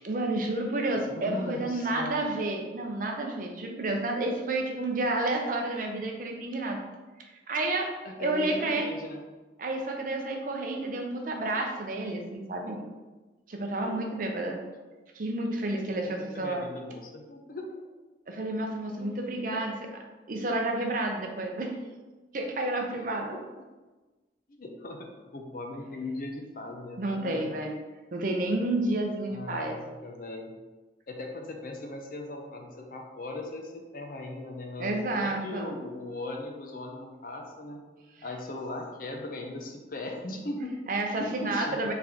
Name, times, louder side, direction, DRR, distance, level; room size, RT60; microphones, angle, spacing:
voice 1, 0.0-6.8 7.5-7.9 8.2-8.9 9.6-12.8 13.5-14.6 15.1-16.6 18.3-19.7 20.3-21.7 22.3-23.3 27.0-27.8 28.1-29.8 34.8-35.7 40.9-41.9, right 2 dB, 50° right, 2 dB, 0.5 m, -30 dB
voice 2, 1.1-2.2 8.0-9.2 13.8-13.9 16.0-17.6 19.0-19.6 24.5-27.5 29.3-30.5 31.1-37.8 38.2-40.8 41.1-41.9, left 2 dB, 50° left, 2 dB, 0.5 m, -39 dB
4.3 x 3.3 x 2.8 m, 1.2 s
head